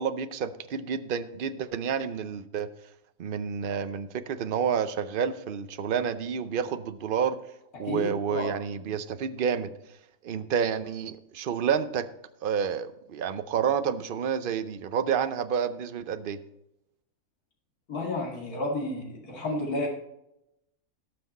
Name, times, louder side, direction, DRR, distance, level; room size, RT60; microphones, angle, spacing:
voice 1, 0.0-2.7 3.2-7.4 7.8-9.7 10.2-12.1 12.4-16.4, right 7 dB, 55° right, 12 dB, 0.6 m, -29 dB
voice 2, 7.7-8.5 17.9-19.9, left 2 dB, 90° left, -1 dB, 2.6 m, -31 dB
18.0 x 6.2 x 4.1 m, 0.85 s
omnidirectional pair, 1.5 m